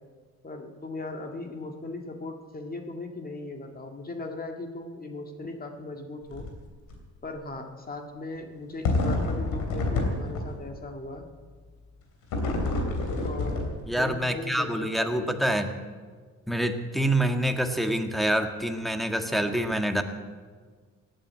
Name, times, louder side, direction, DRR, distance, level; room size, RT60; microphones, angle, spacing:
voice 1, 0.4-6.5 7.2-11.3 13.2-15.2, left 2 dB, 30° left, 3 dB, 1.9 m, -38 dB
sound 1, 6.2-6.6 6.9-7.0 8.8-10.7 12.3-14.1, left 2 dB, 85° left, 3.2 m, -28 dB
voice 2, 13.9-15.7 16.5-20.0, right 1 dB, ahead, 4 dB, 1.7 m, -26 dB
17.5 x 9.2 x 8.4 m, 1.5 s
cardioid pair, 90°, 30 cm